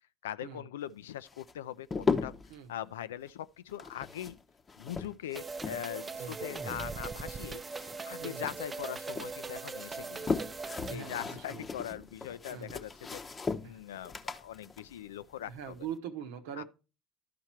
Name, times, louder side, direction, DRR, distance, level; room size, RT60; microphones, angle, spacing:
voice 1, 0.2-2.3 2.7-4.4 4.8-7.6 8.0-10.3 10.9-13.2 13.6-15.8 16.5-16.6, left 11 dB, 85° left, 0.3 m, -41 dB
sound 1, 1.3-2.6 3.7-6.0 6.3-8.2 8.4-9.3 9.8-15.9, left 4 dB, 30° left, 0.8 m, -37 dB
sound 2, 5.3-11.0, right 4 dB, 25° right, 0.6 m, -40 dB
voice 2, 10.9-11.6 12.5-12.7 13.6-13.8 15.5-16.6, right 8 dB, 75° right, 0.9 m, -42 dB
12.0 x 4.6 x 4.4 m
hypercardioid pair, 70°, 0 cm